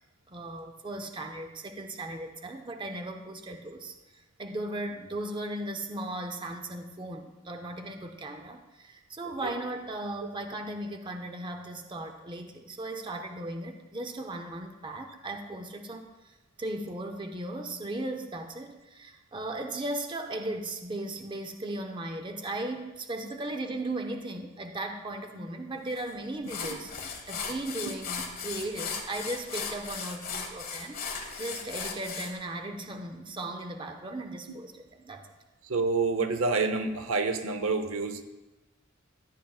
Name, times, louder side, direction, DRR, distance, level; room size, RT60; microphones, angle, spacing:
voice 1, 0.3-31.0 31.4-35.3, right 1 dB, 25° right, 5 dB, 0.6 m, -37 dB
sound 1, 26.0-26.1 26.5-32.3, left 5 dB, 45° left, 1.2 m, -37 dB
voice 2, 35.7-38.2, right 4 dB, 80° right, 8 dB, 0.8 m, -28 dB
14.0 x 8.9 x 2.4 m, 1.1 s
head